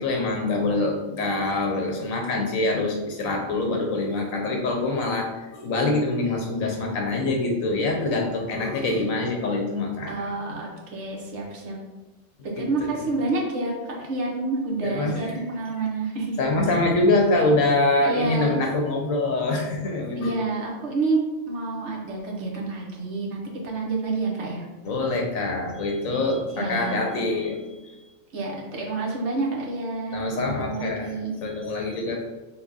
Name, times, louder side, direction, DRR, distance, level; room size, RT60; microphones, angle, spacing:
voice 1, 0.0-10.1 10.5-10.6 12.6-12.7 14.8-15.4 16.4-20.3 24.8-28.0 30.1-32.2, left 2 dB, 90° left, 1 dB, 1.3 m, -25 dB
voice 2, 10.1-11.8 12.4-16.4 16.7-16.8 18.0-18.6 20.2-24.7 26.6-27.0 28.3-31.3, right 3 dB, 60° right, -2 dB, 1.2 m, -28 dB
5.8 x 2.2 x 4.0 m, 1.1 s
omnidirectional pair, 1.4 m